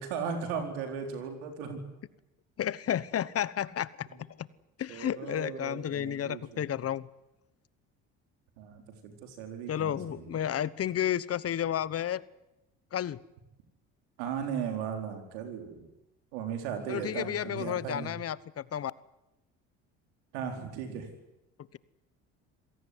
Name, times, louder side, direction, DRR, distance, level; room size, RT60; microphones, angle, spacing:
voice 1, 0.0-1.8 4.9-6.7 8.6-10.3 14.2-15.9 16.3-18.1 20.3-21.1, right 7 dB, 90° right, 5 dB, 4.6 m, -37 dB
voice 2, 2.6-4.5 4.8-7.1 9.7-12.2 12.9-13.2 16.9-18.9, left 10 dB, 45° left, 19 dB, 1.1 m, -32 dB
26.5 x 17.5 x 9.7 m, 0.92 s
supercardioid pair, 75°, 32 cm